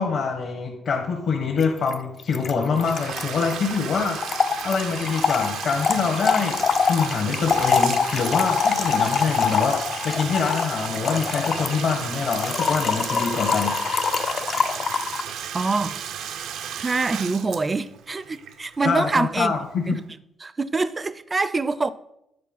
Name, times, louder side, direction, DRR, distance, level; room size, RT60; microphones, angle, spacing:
voice 1, 0.0-6.6 6.8-9.8 10.0-13.9 18.8-20.0, left 5 dB, 65° left, 1.5 m, -25 dB
Trickle dribble / Fill (with liquid), 1.6-1.7 1.9-2.0 2.2-15.3, left 6 dB, 50° left, 0.4 m, -25 dB
Bathtub (filling or washing), 2.7-19.5, right 8 dB, 85° right, 0.6 m, -34 dB
voice 2, 15.5-16.0 16.8-19.5 19.9-20.0 20.4-21.9, right 3 dB, 25° right, 0.5 m, -25 dB
9.7 x 4.5 x 5.5 m
cardioid pair, 90°, 0 cm